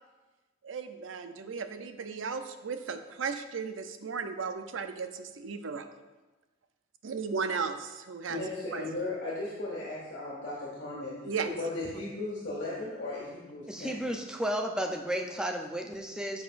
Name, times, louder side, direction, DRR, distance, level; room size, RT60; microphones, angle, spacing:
voice 1, 0.6-5.9 7.0-8.4 8.7-8.8 11.2-11.5, right 5 dB, 85° right, 8 dB, 0.6 m, -35 dB
voice 2, 8.3-11.1 11.4-14.0, left 2 dB, 60° left, -7 dB, 1.9 m, -36 dB
voice 3, 13.7-16.4, equal, 5° right, 2 dB, 0.6 m, -33 dB
10.0 x 6.5 x 2.5 m, 1.2 s
head